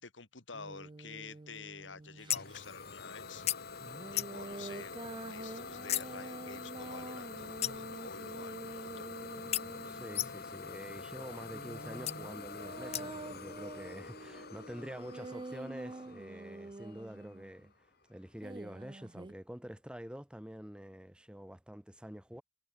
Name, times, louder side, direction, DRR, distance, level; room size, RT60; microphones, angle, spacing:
voice 1, 0.0-3.6 4.1-9.1, left 5 dB, 85° left, 2.4 m, -49 dB
sound 1, 0.5-2.6 3.8-10.5 11.3-17.7 18.4-19.3, right 2 dB, 25° right, 0.5 m, -47 dB
Idling / Domestic sounds home sounds, 2.3-17.9, left 4 dB, 55° left, 2.4 m, -46 dB
sound 2, 2.3-2.6 3.5-3.6 4.2-4.5 5.9-6.1 7.6-8.0 9.5-9.6 10.1-10.5 12.1-12.2 12.9-13.3, left 12 dB, 35° left, 0.4 m, -34 dB
voice 2, 9.9-17.7 18.1-22.4, equal, 5° right, 1.2 m, -47 dB
head